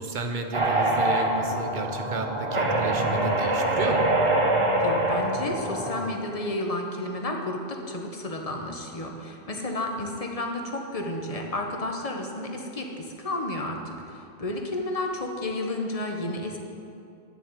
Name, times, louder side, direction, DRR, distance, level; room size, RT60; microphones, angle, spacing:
voice 1, 0.0-4.1, right 3 dB, 50° right, 5 dB, 1.1 m, -32 dB
sound 1, 0.5-6.1, right 1 dB, 30° right, 1.1 m, -24 dB
voice 2, 4.8-16.6, left 1 dB, 35° left, 2 dB, 1.2 m, -32 dB
9.7 x 7.2 x 8.0 m, 2.5 s
omnidirectional pair, 1.1 m